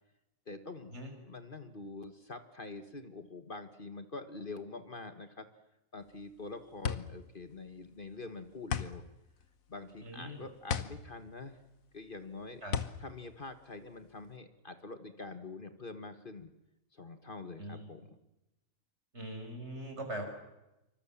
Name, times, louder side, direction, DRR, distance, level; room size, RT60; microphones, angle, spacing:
voice 1, 0.5-0.9 1.2-5.5 5.9-9.0 9.7-11.6 11.9-12.6 13.0-16.5 16.9-18.2, left 3 dB, 40° left, 9 dB, 1.7 m, -45 dB
sound 1, 6.0-14.4, left 7 dB, 85° left, 1.6 m, -38 dB
voice 2, 10.0-10.4 12.6-12.8 17.6-17.9 19.1-20.2, right 1 dB, 55° right, 4 dB, 6.0 m, -41 dB
27.5 x 25.0 x 7.3 m, 0.95 s
omnidirectional pair, 1.4 m